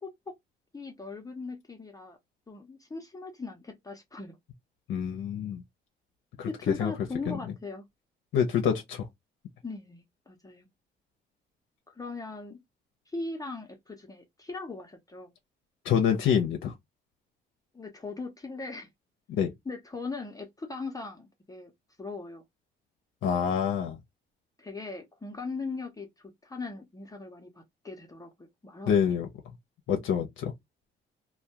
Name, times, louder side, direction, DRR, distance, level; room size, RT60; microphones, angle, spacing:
voice 1, 0.0-0.3 0.7-2.2 2.5-4.4 6.5-7.8 9.6-10.7 11.9-12.6 13.1-15.3 17.7-18.9 19.7-21.7 22.0-22.4 23.6-23.7 24.6-29.1, left 3 dB, 20° left, 0.6 m, -39 dB
voice 2, 4.9-5.6 6.4-6.5 6.8-6.9 7.3-7.4 8.3-9.0 15.8-16.7 19.3-19.5 23.2-24.0 28.9-29.3 29.9-30.5, left 8 dB, 75° left, 0.5 m, -26 dB
2.2 x 2.1 x 2.7 m
cardioid pair, 90°, 20 cm